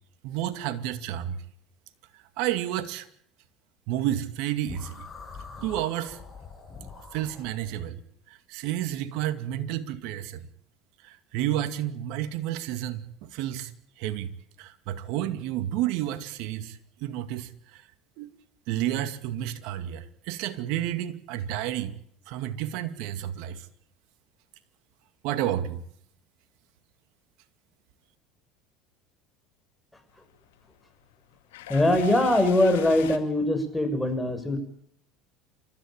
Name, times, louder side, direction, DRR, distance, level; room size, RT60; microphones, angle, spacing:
voice 1, 0.2-1.4 2.1-3.1 3.9-5.1 5.6-6.2 7.1-8.0 8.3-10.5 11.0-13.7 14.0-14.3 14.6-17.9 18.2-18.3 18.7-22.0 22.3-23.7 25.2-25.8, right 12 dB, 70° right, 10 dB, 2.2 m, -31 dB
sound 1, 4.7-7.9, left 5 dB, 30° left, 7.0 m, -44 dB
sound 2, 30.1-33.2, left 13 dB, 85° left, 2.3 m, -44 dB
voice 2, 31.7-34.6, left 1 dB, 10° left, 8 dB, 6.3 m, -22 dB
29.0 x 14.0 x 8.9 m, 0.66 s
supercardioid pair, 90°, 0 cm